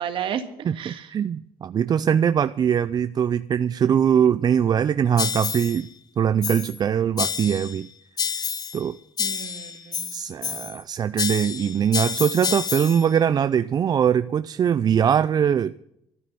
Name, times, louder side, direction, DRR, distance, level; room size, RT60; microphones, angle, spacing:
voice 1, 0.0-1.1 9.2-10.1, right 9 dB, 65° right, 1.9 m, -32 dB
voice 2, 0.6-5.9 6.2-7.9 8.7-9.0 10.1-15.7, right 8 dB, 45° right, 0.4 m, -22 dB
sound 1, 5.2-5.8 6.4-6.8 7.2-7.8 8.2-8.8 9.2-10.8 11.2-13.1, left 7 dB, 40° left, 0.9 m, -29 dB
12.5 x 9.8 x 9.7 m
cardioid pair, 95°, 10 cm